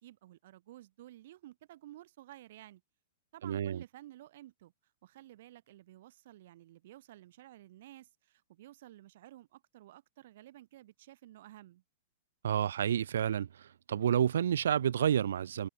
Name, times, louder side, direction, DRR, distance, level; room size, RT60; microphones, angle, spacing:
voice 1, 0.0-2.8 3.3-4.7 5.0-11.8, right 14 dB, 50° right, 2.9 m, -53 dB
voice 2, 3.4-3.8 12.4-13.5 13.9-15.7, right 9 dB, 85° right, 0.5 m, -29 dB
supercardioid pair, 170°, 0 cm